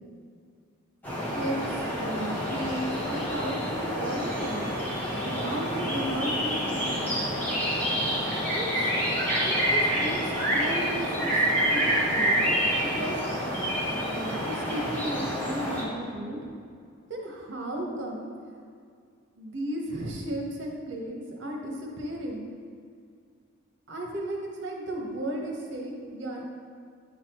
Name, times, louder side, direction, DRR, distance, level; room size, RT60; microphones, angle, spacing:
sound 1, 1.0-15.8, equal, 10° left, 1.3 m, -28 dB
voice 1, 1.4-4.7 5.2-7.1 8.5-8.9 9.4-13.2 14.1-16.4 17.1-18.3 19.4-22.5 23.9-26.5, right 1 dB, 65° right, -1 dB, 1.1 m, -34 dB
9.5 x 4.1 x 3.0 m, 2.2 s
head